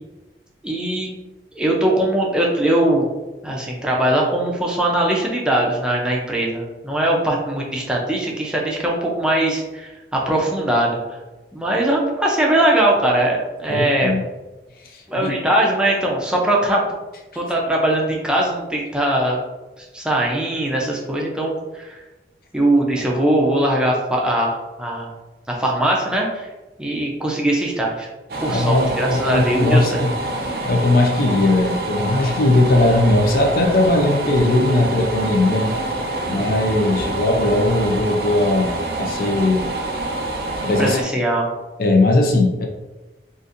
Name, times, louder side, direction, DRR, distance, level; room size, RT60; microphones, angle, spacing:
voice 1, 0.6-1.1 1.6-3.1 3.4-11.0 11.5-14.1 15.1-16.9 17.4-19.4 19.8-22.0 22.5-25.1 25.5-26.5 26.8-28.1 28.4-30.0 40.8-41.5, right 1 dB, 5° right, -2 dB, 0.4 m, -20 dB
voice 2, 13.7-14.2 15.2-15.3 28.5-30.1 30.7-35.8 36.3-39.7 40.6-41.0 41.8-42.7, left 2 dB, 55° left, 2 dB, 0.4 m, -18 dB
sound 1, 28.3-41.0, right 2 dB, 60° right, 0.5 m, -26 dB
3.9 x 2.5 x 2.5 m, 1.1 s
head